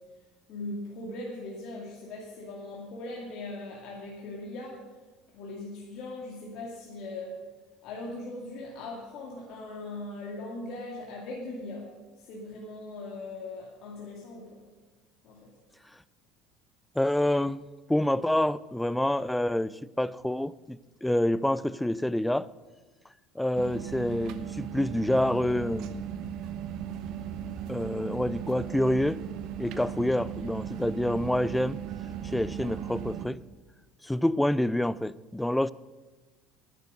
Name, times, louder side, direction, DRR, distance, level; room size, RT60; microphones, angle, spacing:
voice 1, 0.5-4.8 5.3-7.4 7.8-11.9 12.2-14.5 15.2-15.5, left 2 dB, 60° left, -3 dB, 2.2 m, -39 dB
voice 2, 17.0-17.6 17.9-22.5 23.4-26.1 27.7-29.2 29.6-31.8 32.2-33.4 34.0-35.7, left 1 dB, 5° left, 20 dB, 0.3 m, -27 dB
sound 1, 23.5-33.3, right 9 dB, 65° right, 0.9 m, -37 dB
9.7 x 9.2 x 6.7 m, 1.3 s
supercardioid pair, 95°, 0 cm